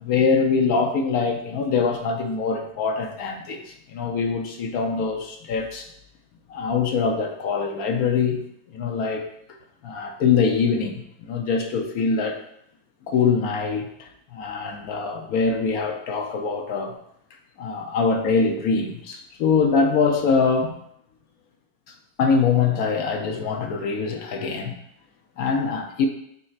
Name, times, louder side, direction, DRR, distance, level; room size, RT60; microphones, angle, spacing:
voice 1, 0.0-5.9 6.5-9.3 9.8-12.4 13.1-17.0 17.6-20.7 21.9-24.7 25.4-26.1, left 5 dB, 65° left, 4 dB, 0.9 m, -23 dB
9.5 x 4.3 x 2.4 m, 0.74 s
omnidirectional pair, 1.9 m